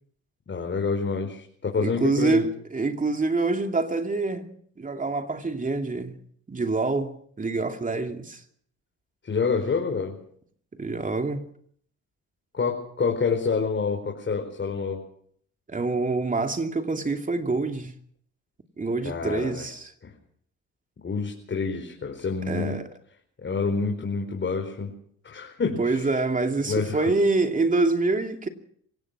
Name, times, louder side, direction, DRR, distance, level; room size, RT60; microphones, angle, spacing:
voice 1, 0.5-2.4 9.2-10.1 12.5-15.0 19.0-19.7 20.0-20.1 21.0-22.8 23.4-24.9 25.2-26.1 26.7-27.1, left 5 dB, 40° left, 4.8 m, -27 dB
voice 2, 1.8-4.5 4.8-6.2 6.5-8.4 10.7-11.5 15.7-17.9 18.8-19.9 22.5-22.9 25.8-28.5, right 3 dB, 25° right, 2.7 m, -26 dB
26.5 x 16.5 x 6.1 m
cardioid pair, 90°, 30 cm